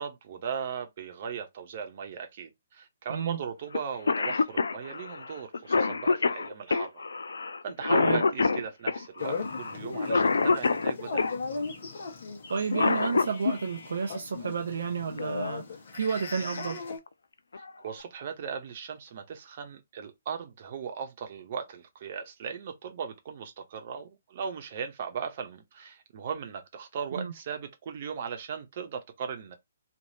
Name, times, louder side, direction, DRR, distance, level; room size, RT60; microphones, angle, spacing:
voice 1, 0.0-7.0 7.6-11.2 17.8-29.6, right 7 dB, 45° right, 0.9 m, -38 dB
Cough, 3.7-3.8 4.1-11.4 12.5-13.6 15.2-15.3 16.3-16.6 17.1-17.2 17.5-18.0, left 4 dB, 70° left, 0.3 m, -26 dB
sound 1, 9.2-17.0, left 4 dB, 55° left, 1.1 m, -37 dB
voice 2, 12.5-16.8 27.1-27.3, right 6 dB, 65° right, 0.5 m, -31 dB
3.2 x 2.6 x 2.6 m
figure-of-eight pair, 130°, 0 cm